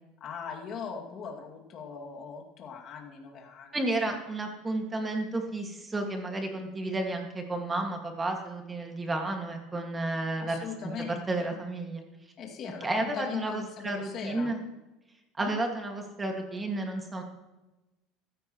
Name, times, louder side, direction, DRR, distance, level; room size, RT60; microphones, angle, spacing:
voice 1, 0.2-3.8 10.4-11.6 12.4-14.5 15.4-15.5, left 6 dB, 40° left, 0 dB, 2.3 m, -40 dB
voice 2, 3.7-10.6 11.3-12.0 12.8-14.6 15.4-17.2, right 2 dB, 15° right, 3 dB, 1.9 m, -32 dB
15.0 x 13.5 x 3.1 m, 1.1 s
cardioid pair, 145°, 0 cm